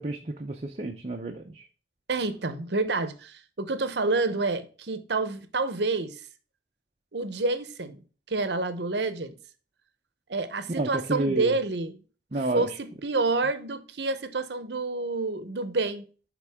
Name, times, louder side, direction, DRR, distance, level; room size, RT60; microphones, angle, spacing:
voice 1, 0.0-1.7 10.7-11.6 12.3-12.7, right 2 dB, 35° right, 0.6 m, -30 dB
voice 2, 2.1-6.2 7.1-8.0 8.3-9.4 10.3-12.0 12.5-16.0, right 3 dB, 65° right, 0.8 m, -28 dB
9.4 x 3.7 x 3.5 m
head